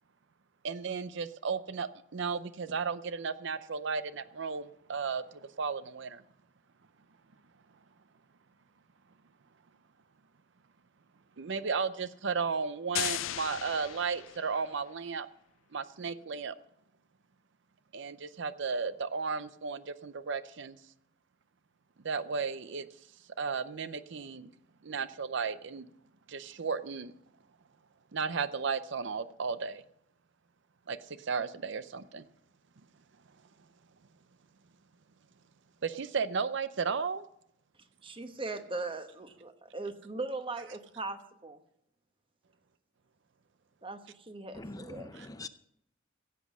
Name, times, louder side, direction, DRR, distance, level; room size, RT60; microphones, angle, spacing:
voice 1, 0.6-6.2 11.4-15.3 15.7-16.5 17.9-20.8 22.0-22.9 23.4-24.5 24.8-25.9 26.3-27.1 28.1-29.8 30.9-32.2 35.8-37.2 45.1-45.3, right 5 dB, 65° right, 14 dB, 0.6 m, -34 dB
sound 1, 12.9-14.8, left 14 dB, 80° left, 0.4 m, -36 dB
voice 2, 38.0-41.6 43.8-45.1, right 3 dB, 25° right, 8 dB, 1.1 m, -39 dB
voice 3, 44.5-45.5, left 2 dB, 20° left, 12 dB, 0.5 m, -43 dB
16.0 x 8.2 x 6.2 m, 0.74 s
head